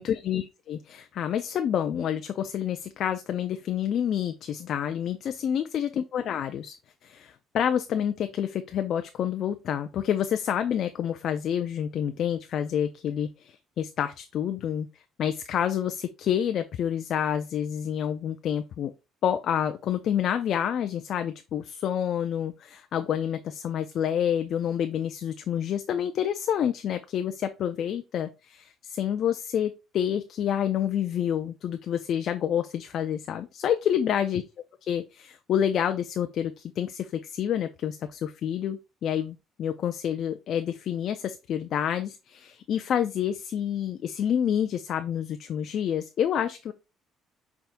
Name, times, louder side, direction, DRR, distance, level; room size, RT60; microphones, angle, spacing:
voice 1, 0.0-6.7 7.0-14.9 15.2-18.9 19.2-34.4 34.8-46.7, left 9 dB, 50° left, 8 dB, 0.3 m, -28 dB
5.7 x 3.4 x 2.5 m, 0.27 s
cardioid pair, 145°, 0 cm